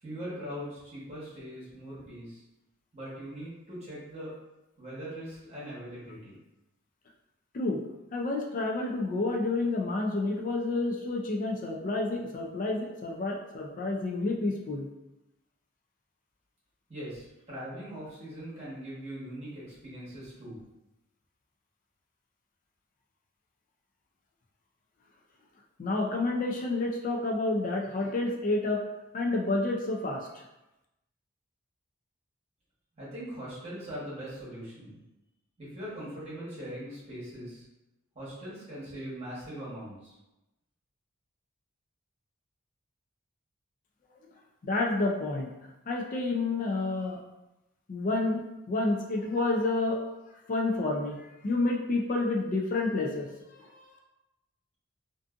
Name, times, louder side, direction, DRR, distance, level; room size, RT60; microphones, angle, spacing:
voice 1, 0.0-2.4 2.9-4.3 4.8-6.4 16.9-20.6 33.0-35.0 35.6-37.6 38.1-40.1, equal, 30° right, -9 dB, 1.1 m, -41 dB
voice 2, 8.1-14.9 25.8-28.8 29.1-30.4 44.6-45.5 45.9-47.2 47.9-50.0 50.5-53.9, left 2 dB, 40° left, -1 dB, 0.3 m, -29 dB
2.5 x 2.4 x 2.4 m, 0.95 s
head